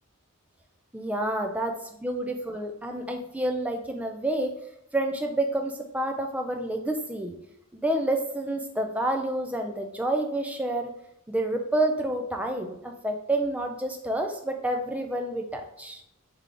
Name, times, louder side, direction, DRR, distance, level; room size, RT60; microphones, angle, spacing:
voice 1, 0.9-4.5 4.9-7.3 7.7-10.9 11.3-16.0, right 1 dB, 5° right, 4 dB, 0.3 m, -29 dB
3.3 x 3.3 x 3.7 m, 0.78 s
head